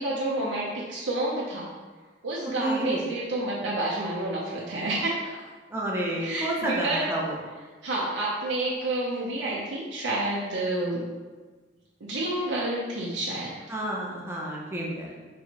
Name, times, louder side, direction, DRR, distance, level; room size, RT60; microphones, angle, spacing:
voice 1, 0.0-1.7 2.2-5.4 6.2-7.0 7.8-11.0 12.0-13.5, right 2 dB, 85° right, -5 dB, 0.6 m, -29 dB
voice 2, 2.6-3.0 5.7-7.4 13.7-15.3, right 1 dB, 15° right, -3 dB, 0.6 m, -30 dB
4.3 x 3.1 x 2.8 m, 1.4 s
head